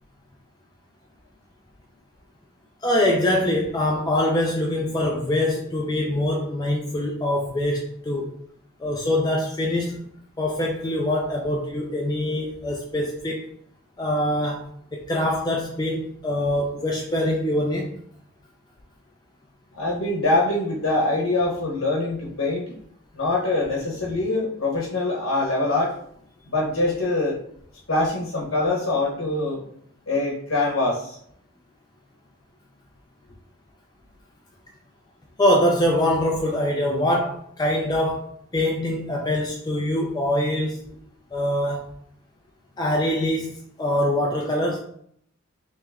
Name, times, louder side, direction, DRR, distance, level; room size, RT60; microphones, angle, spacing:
voice 1, 2.8-8.3 8.8-10.1 10.4-13.4 14.0-18.0 35.4-40.8 41.3-41.9 42.8-44.8, left 1 dB, 20° left, 0 dB, 0.4 m, -24 dB
voice 2, 19.8-22.8 23.1-25.9 26.5-27.4 27.9-29.6 30.1-31.2, left 2 dB, 65° left, -2 dB, 0.9 m, -24 dB
3.3 x 3.1 x 3.5 m, 0.67 s
head